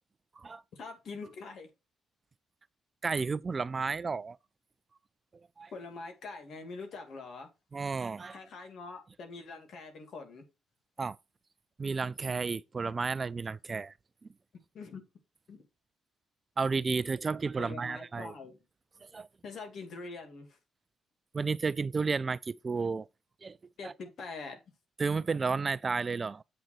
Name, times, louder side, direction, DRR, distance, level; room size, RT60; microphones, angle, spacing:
voice 1, 0.7-1.7 5.7-7.5 8.3-10.4 14.7-15.0 15.5-15.7 17.6-18.6 19.4-20.6 23.8-24.6, left 4 dB, 60° left, 2.3 m, -44 dB
voice 2, 3.0-4.4 5.6-5.7 7.7-8.4 11.0-11.2 11.8-13.9 16.6-18.3 19.1-19.3 21.3-23.1 23.4-23.6 23.8-23.9 25.0-26.4, right 4 dB, 35° right, 0.3 m, -32 dB
7.9 x 3.7 x 5.9 m
cardioid pair, 90°, 0 cm